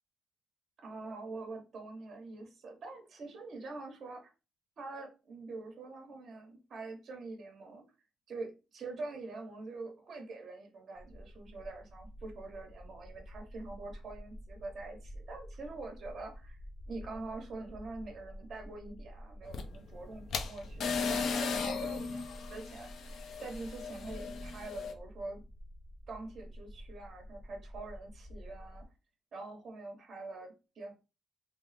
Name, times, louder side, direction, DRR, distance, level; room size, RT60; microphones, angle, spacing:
voice 1, 0.8-4.3 4.8-7.8 8.3-16.6 16.9-25.4 26.1-28.8 29.3-30.9, right 3 dB, 55° right, 2 dB, 1.0 m, -45 dB
sound 1, 11.0-28.8, equal, 35° left, 0.9 m, -50 dB
sound 2, 19.4-24.9, left 5 dB, 65° left, 0.5 m, -37 dB
3.4 x 2.0 x 4.0 m, 0.30 s
cardioid pair, 90°, 0 cm